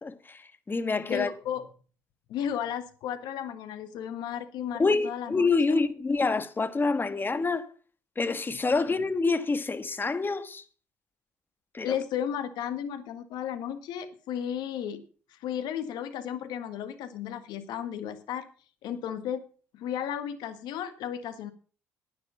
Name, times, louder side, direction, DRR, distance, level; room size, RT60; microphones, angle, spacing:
voice 1, 0.0-1.3 4.8-7.7 8.1-10.6 11.7-11.9, left 4 dB, 25° left, 1.5 m, -27 dB
voice 2, 1.1-1.6 2.3-5.8 11.8-15.0 15.3-18.4 18.8-19.4 19.7-21.5, left 9 dB, 70° left, 1.7 m, -34 dB
10.5 x 10.0 x 5.7 m
hypercardioid pair, 55°, 8 cm